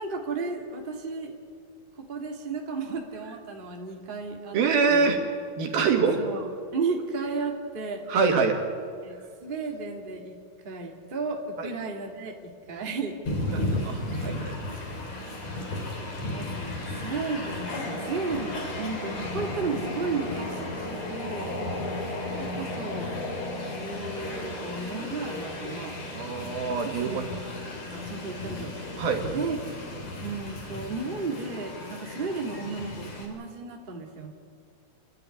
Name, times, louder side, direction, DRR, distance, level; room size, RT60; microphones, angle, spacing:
voice 1, 0.0-1.4 2.0-4.6 4.9-5.1 6.2-8.0 9.0-10.4 10.6-13.2 14.1-14.3 15.4-21.6 22.3-23.1 23.6-25.9 27.0-27.4 27.9-28.9 29.3-29.6 30.2-34.3, right 4 dB, 20° right, 1 dB, 1.7 m, -34 dB
voice 2, 4.5-5.2 5.6-6.2 8.1-8.6 11.6-11.7 13.5-14.3 21.3-21.7 26.1-27.3 29.0-29.2, right 5 dB, 75° right, 3 dB, 3.8 m, -25 dB
Train, 13.3-33.3, left 2 dB, 45° left, 4.4 m, -34 dB
29.0 x 12.0 x 9.9 m, 2.3 s
omnidirectional pair, 4.3 m